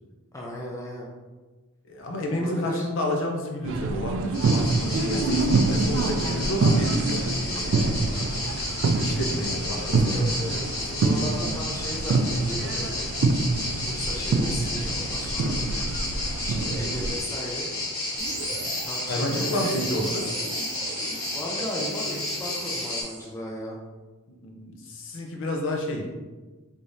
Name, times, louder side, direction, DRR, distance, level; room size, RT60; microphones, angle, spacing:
voice 1, 0.3-1.1 2.3-2.9 10.1-13.1 13.8-15.6 16.4-17.7 18.8-20.0 21.3-23.8, equal, 15° left, -3 dB, 0.4 m, -35 dB
voice 2, 1.8-6.9 7.4-8.6 9.0-10.2 18.6-18.7 19.1-20.3 24.3-26.1, left 1 dB, 60° left, 1 dB, 0.6 m, -30 dB
sound 1, 3.6-17.2, right 3 dB, 60° right, 0.3 m, -26 dB
sound 2, 4.3-23.0, left 2 dB, 75° left, 1.1 m, -32 dB
sound 3, 18.2-23.3, right 3 dB, 90° right, 0.8 m, -38 dB
3.5 x 3.3 x 2.6 m, 1.2 s
head